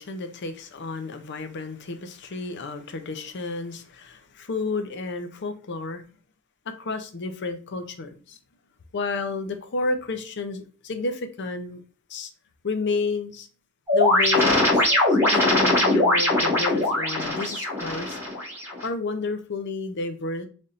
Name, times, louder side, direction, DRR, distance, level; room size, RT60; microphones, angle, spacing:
voice 1, 0.0-6.0 6.8-8.4 8.9-11.8 12.1-12.3 12.6-13.5 13.9-14.7 15.3-18.2 18.8-20.5, left 3 dB, 55° left, 0.6 m, -31 dB
sound 1, 13.9-18.9, left 1 dB, 10° right, 1.9 m, -21 dB
4.2 x 3.5 x 2.5 m
head